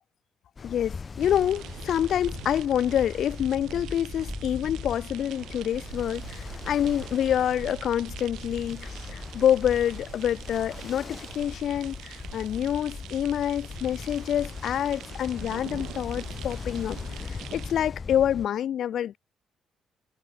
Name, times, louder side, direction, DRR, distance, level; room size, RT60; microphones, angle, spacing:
voice 1, 0.6-17.0 17.3-19.2, left 10 dB, 70° left, 0.4 m, -27 dB
Ocean, 0.6-18.5, left 5 dB, 35° left, 2.9 m, -40 dB
sound 1, 1.2-17.7, right 14 dB, 85° right, 4.2 m, -44 dB
cardioid pair, 90°, 0 cm